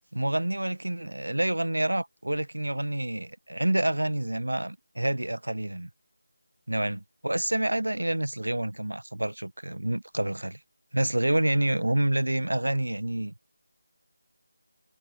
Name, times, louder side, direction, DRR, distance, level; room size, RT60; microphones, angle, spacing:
voice 1, 0.1-5.9 6.7-10.6 10.9-13.3, right 1 dB, 75° right, 1.5 m, -28 dB
figure-of-eight pair, 160°, 0 cm